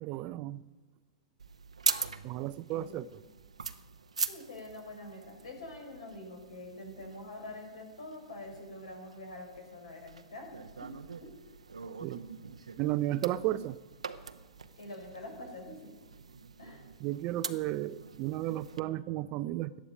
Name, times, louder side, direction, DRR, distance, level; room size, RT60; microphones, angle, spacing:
voice 1, 0.0-0.6 2.2-3.1 12.0-12.2 12.8-13.8 17.0-19.8, right 15 dB, 40° right, 0.5 m, -33 dB
sound 1, 1.4-18.8, right 5 dB, 80° right, 0.7 m, -42 dB
voice 2, 2.7-3.1 4.3-11.4 14.8-15.9 16.6-16.9, left 2 dB, 70° left, 4.6 m, -46 dB
17.5 x 12.5 x 5.1 m
figure-of-eight pair, 105°, 3 cm